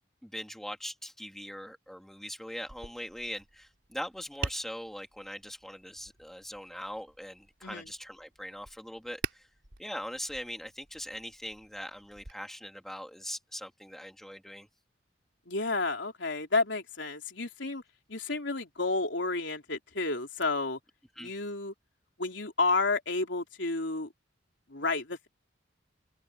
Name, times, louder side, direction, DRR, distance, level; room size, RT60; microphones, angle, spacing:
voice 1, 0.2-9.5 9.8-14.7 21.2-21.3, equal, ahead, 2.4 m, -41 dB
Tap, 2.6-12.3, right 4 dB, 85° right, 4.0 m, -45 dB
voice 2, 15.5-17.8 18.1-20.8 21.2-21.7 22.2-24.1 24.7-25.3, left 3 dB, 70° left, 3.5 m, -31 dB
open air
head